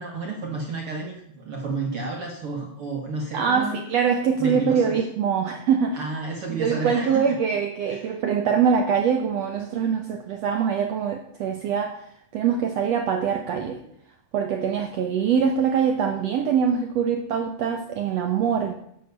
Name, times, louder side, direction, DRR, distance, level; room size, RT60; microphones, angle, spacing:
voice 1, 0.0-3.8 4.4-5.0 5.9-7.2 7.9-8.1, right 3 dB, 50° right, 1 dB, 1.9 m, -31 dB
voice 2, 3.3-6.0 6.5-12.0 12.3-13.8 14.3-18.7, right 7 dB, 70° right, 4 dB, 1.6 m, -23 dB
11.5 x 7.7 x 6.7 m, 0.73 s
omnidirectional pair, 3.9 m